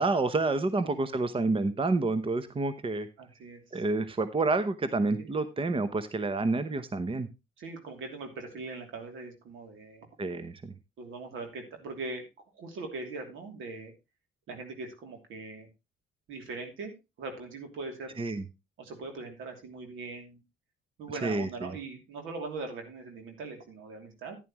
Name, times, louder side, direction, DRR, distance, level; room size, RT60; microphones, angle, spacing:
voice 1, 0.0-3.1 3.7-7.3 10.2-10.7 18.2-18.4 21.2-21.7, right 3 dB, 25° right, 12 dB, 1.0 m, -29 dB
voice 2, 3.2-3.8 5.1-5.3 7.6-10.1 11.0-12.2 12.5-13.9 14.5-15.7 16.3-18.2 18.8-20.4 21.0-24.4, right 3 dB, 85° right, 5 dB, 3.0 m, -41 dB
11.0 x 10.5 x 3.1 m, 0.24 s
cardioid pair, 90°, 20 cm